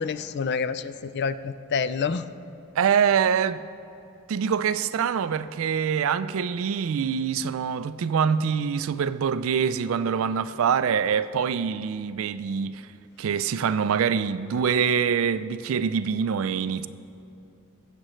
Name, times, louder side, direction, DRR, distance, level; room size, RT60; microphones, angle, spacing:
voice 1, 0.0-2.3, left 5 dB, 50° left, 0.4 m, -28 dB
voice 2, 2.8-3.6 4.3-12.8 13.2-16.9, right 7 dB, 70° right, 0.4 m, -25 dB
20.5 x 7.6 x 3.1 m
head